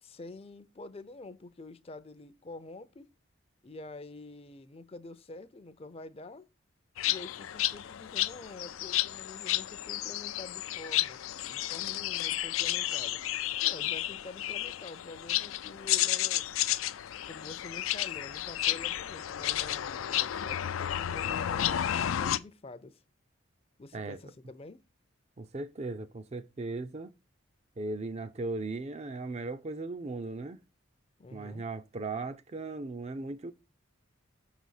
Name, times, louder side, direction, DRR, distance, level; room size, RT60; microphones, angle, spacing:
voice 1, 0.0-3.1 3.6-6.5 7.1-11.2 11.5-13.2 13.6-16.5 17.2-23.0 23.8-24.8 31.2-31.6, left 2 dB, 30° left, 0.5 m, -47 dB
sound 1, 7.0-22.4, left 13 dB, 80° left, 0.4 m, -32 dB
voice 2, 25.4-27.1 27.8-30.6 31.3-33.5, right 3 dB, 30° right, 0.4 m, -37 dB
6.4 x 4.0 x 6.4 m
head